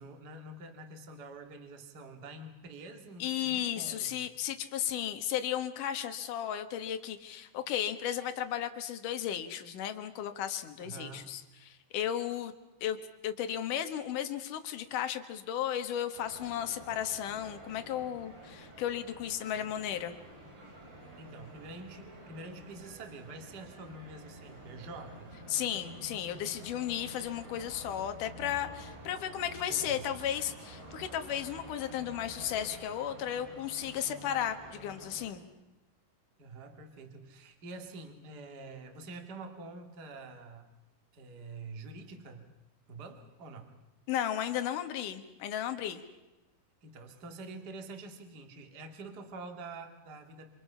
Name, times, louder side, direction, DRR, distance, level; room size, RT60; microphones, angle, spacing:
voice 1, 0.0-4.3 10.8-11.3 21.2-25.3 29.7-30.1 36.4-40.7 41.1-42.5 42.9-43.7 46.8-50.5, right 3 dB, 35° right, 5 dB, 1.9 m, -46 dB
voice 2, 3.2-12.5 12.8-13.0 13.2-20.1 25.5-35.5 44.1-46.0, left 10 dB, 60° left, 8 dB, 2.5 m, -34 dB
sound 1, 16.1-35.3, right 1 dB, 90° right, 10.0 m, -50 dB
28.5 x 26.5 x 5.7 m, 1.0 s
omnidirectional pair, 5.0 m